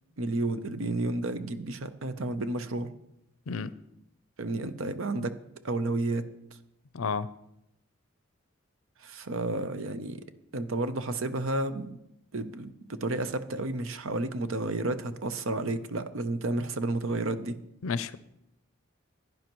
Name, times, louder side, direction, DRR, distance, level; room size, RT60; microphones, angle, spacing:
voice 1, 0.2-2.9 4.4-5.4 5.6-6.3 9.0-10.2 10.5-12.0 12.3-17.6, right 2 dB, 65° right, 10 dB, 0.8 m, -31 dB
voice 2, 6.9-7.3 17.8-18.2, left 5 dB, 70° left, 15 dB, 0.5 m, -31 dB
16.0 x 10.5 x 3.1 m, 0.82 s
head